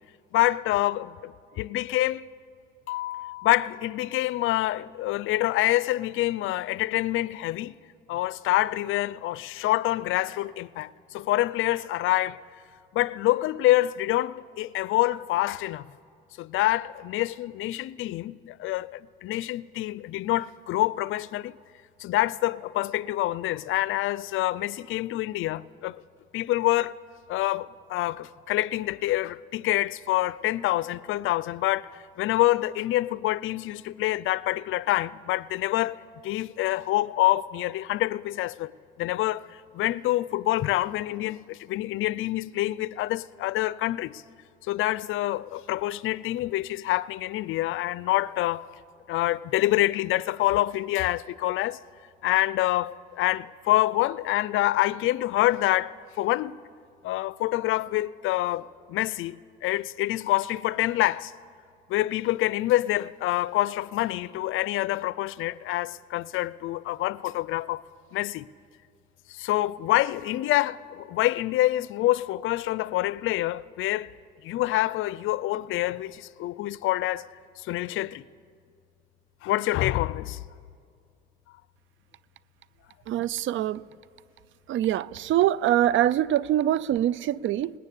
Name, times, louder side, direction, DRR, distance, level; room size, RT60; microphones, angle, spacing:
voice 1, 0.3-2.2 2.9-7.7 8.1-12.4 12.9-15.9 16.4-21.5 22.0-26.0 26.3-27.0 27.3-38.7 39.0-44.2 44.7-48.7 49.1-51.8 52.2-56.6 57.0-61.3 61.9-67.8 68.1-68.5 69.3-74.1 74.4-77.3 77.6-78.3 79.4-80.4, left 16 dB, 85° left, 0.5 m, -26 dB
voice 2, 83.1-83.8 84.7-87.7, right 12 dB, 75° right, 0.5 m, -24 dB
27.5 x 19.5 x 8.4 m
cardioid pair, 90°, 20 cm